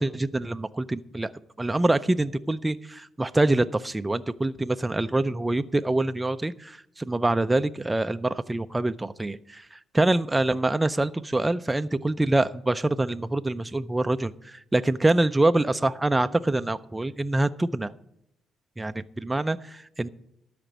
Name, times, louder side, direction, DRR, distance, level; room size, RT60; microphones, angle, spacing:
voice 1, 0.0-1.3 1.6-17.9 18.8-20.1, right 2 dB, 15° right, 10 dB, 0.4 m, -25 dB
12.5 x 5.1 x 8.0 m, 0.76 s
cardioid pair, 90°, 0 cm